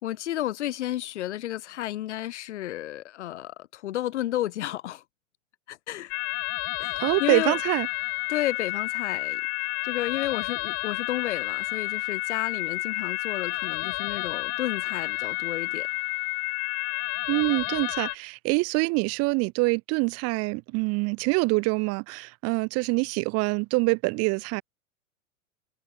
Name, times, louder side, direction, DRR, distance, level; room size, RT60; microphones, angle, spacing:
voice 1, 0.0-5.0 5.7-6.1 6.8-7.6 8.3-9.4 9.8-15.9, left 13 dB, 60° left, 2.4 m, -32 dB
sound 1, 6.1-18.2, left 30 dB, 40° left, 3.3 m, -30 dB
voice 2, 7.0-7.9 17.3-24.6, right 27 dB, 40° right, 1.5 m, -25 dB
figure-of-eight pair, 95°, 40 cm